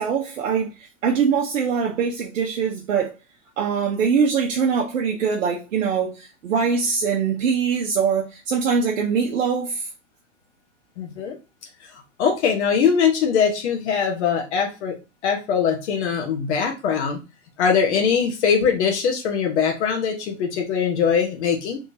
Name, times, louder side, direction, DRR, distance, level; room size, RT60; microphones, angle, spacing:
voice 1, 0.0-3.1 3.6-9.9, right 6 dB, 75° right, 0.9 m, -23 dB
voice 2, 11.0-11.4 12.2-15.0 15.2-17.2 17.6-21.8, left 6 dB, 60° left, 1.0 m, -21 dB
3.5 x 3.2 x 2.7 m
hypercardioid pair, 110°, 38 cm